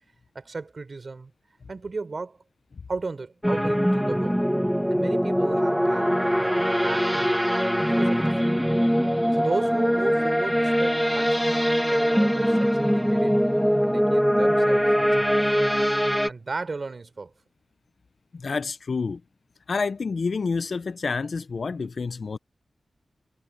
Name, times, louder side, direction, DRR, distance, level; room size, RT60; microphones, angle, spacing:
voice 1, 0.3-1.3 1.7-2.4 2.9-4.4 4.9-7.3 7.8-8.5 9.3-13.5 13.8-15.4 16.3-17.3, right 3 dB, 45° right, 5.1 m, -35 dB
sound 1, 3.4-16.3, equal, ahead, 1.7 m, -22 dB
voice 2, 18.3-19.2 19.7-22.4, left 4 dB, 55° left, 0.6 m, -28 dB
wide cardioid pair, 135°, 0 cm